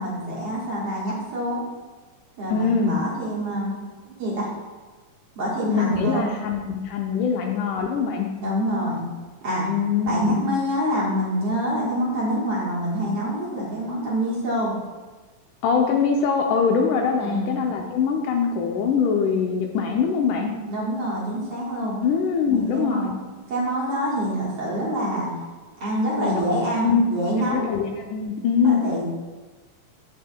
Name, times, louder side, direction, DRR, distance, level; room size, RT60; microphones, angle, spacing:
voice 1, 0.0-1.6 2.4-3.8 4.0-4.5 5.4-6.3 8.4-9.0 9.4-9.7 10.1-14.7 17.2-17.6 20.7-22.0 22.5-23.2 23.5-25.3 25.8-27.7 28.6-29.0, equal, 55° right, -5 dB, 2.0 m, -26 dB
voice 2, 2.5-3.0 5.7-8.3 9.7-10.5 15.6-20.5 22.0-23.1 26.2-26.5 26.8-27.0 27.4-28.8, left 6 dB, 75° left, 2 dB, 2.0 m, -23 dB
14.0 x 5.5 x 2.2 m, 1.3 s
omnidirectional pair, 3.9 m